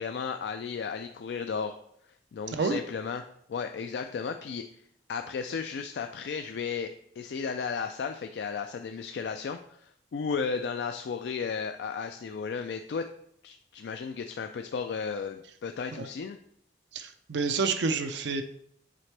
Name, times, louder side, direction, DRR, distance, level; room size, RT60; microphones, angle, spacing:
voice 1, 0.0-1.8 2.3-4.8 5.1-13.1 13.4-16.4, left 5 dB, 70° left, 7 dB, 0.3 m, -34 dB
voice 2, 16.9-18.4, right 4 dB, 75° right, 7 dB, 0.5 m, -28 dB
7.5 x 4.3 x 3.3 m, 0.70 s
head